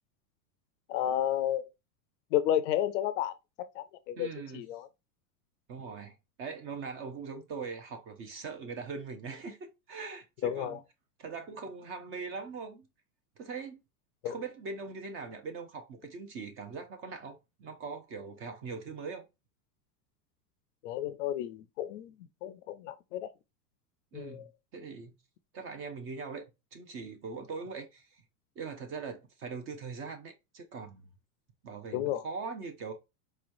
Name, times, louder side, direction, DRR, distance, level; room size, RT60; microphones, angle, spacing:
voice 1, 0.9-1.7 2.3-3.3 3.7-4.3 4.5-4.9 10.4-10.8 14.2-14.3 20.8-22.1 22.4-23.3 24.1-24.5 31.9-32.2, left 11 dB, 50° left, 0.5 m, -31 dB
voice 2, 4.2-4.7 5.7-10.8 11.2-12.9 13.4-13.8 14.2-19.3 24.1-25.1 25.5-26.5 26.7-28.2 28.6-31.0 31.6-32.9, right 4 dB, 25° right, 0.6 m, -41 dB
4.6 x 3.0 x 2.5 m
supercardioid pair, 145°, 47 cm